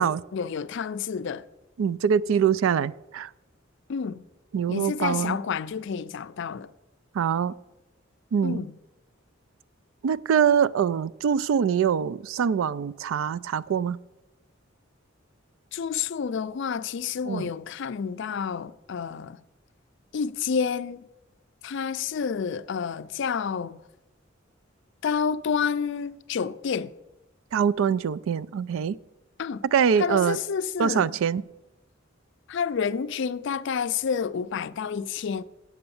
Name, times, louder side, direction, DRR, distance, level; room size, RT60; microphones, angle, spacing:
voice 1, 0.0-1.4 3.9-4.3 4.7-6.7 8.4-8.8 15.7-19.4 20.1-21.1 21.6-23.8 25.0-26.9 29.4-29.6 30.0-31.2 32.5-35.4, left 6 dB, 65° left, 0.4 m, -29 dB
voice 2, 1.8-3.3 4.5-5.4 7.1-7.5 8.3-8.6 10.0-14.0 17.3-17.5 27.5-28.9 29.7-30.4 30.8-31.4, right 7 dB, 80° right, 0.3 m, -24 dB
8.5 x 7.9 x 7.0 m
head